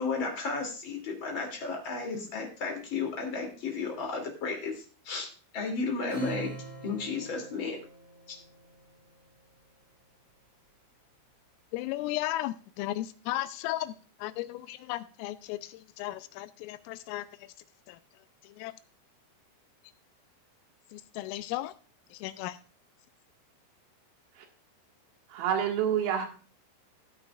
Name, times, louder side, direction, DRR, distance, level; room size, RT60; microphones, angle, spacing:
voice 1, 0.0-5.3 5.5-6.5 6.8-7.8 8.3-8.4, left 4 dB, 35° left, 2.2 m, -33 dB
Acoustic guitar / Strum, 6.1-9.0, right 2 dB, 40° right, 6.5 m, -42 dB
voice 2, 11.7-13.9 14.2-17.3 17.9-18.0 18.6-18.7 20.9-21.7 22.2-22.6, left 15 dB, 85° left, 3.1 m, -35 dB
voice 3, 25.3-26.3, right 9 dB, 80° right, 4.4 m, -27 dB
16.0 x 9.1 x 2.4 m
omnidirectional pair, 6.0 m